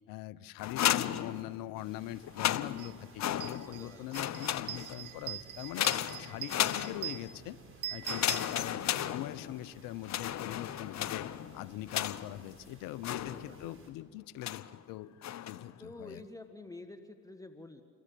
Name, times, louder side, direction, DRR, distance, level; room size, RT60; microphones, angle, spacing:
voice 1, 0.1-5.9 6.2-7.6 7.9-11.3 11.5-15.2 15.5-16.2, left 15 dB, 65° left, 19 dB, 0.8 m, -42 dB
sound 1, 0.6-1.8 2.2-3.8 4.1-5.1 5.7-7.3 8.0-9.7 10.0-12.4 13.0-13.8 14.4-14.8 15.2-15.7, left 11 dB, 50° left, 1.1 m, -34 dB
sound 2, 1.7-13.9, right 2 dB, 35° right, 7.2 m, -58 dB
sound 3, 2.8-2.9 3.3-9.1, right 13 dB, 60° right, 1.2 m, -43 dB
voice 2, 3.6-4.2 13.1-13.7 15.8-17.8, left 2 dB, 10° left, 7 dB, 1.7 m, -49 dB
28.5 x 22.0 x 8.5 m, 2.2 s
hypercardioid pair, 60°, 36 cm